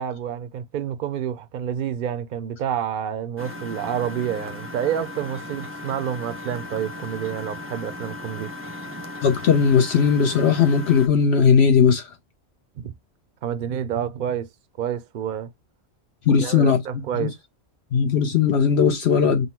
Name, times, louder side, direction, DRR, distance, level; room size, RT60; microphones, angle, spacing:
voice 1, 0.0-8.5 12.8-12.9 13.4-14.5 14.8-15.5 16.3-17.3, right 9 dB, 60° right, 0.6 m, -28 dB
Engine, 3.4-11.1, left 2 dB, 15° right, 0.5 m, -36 dB
voice 2, 9.2-12.1 16.3-17.3 17.9-19.5, left 6 dB, 70° left, 0.9 m, -18 dB
3.9 x 2.0 x 4.2 m
omnidirectional pair, 1.2 m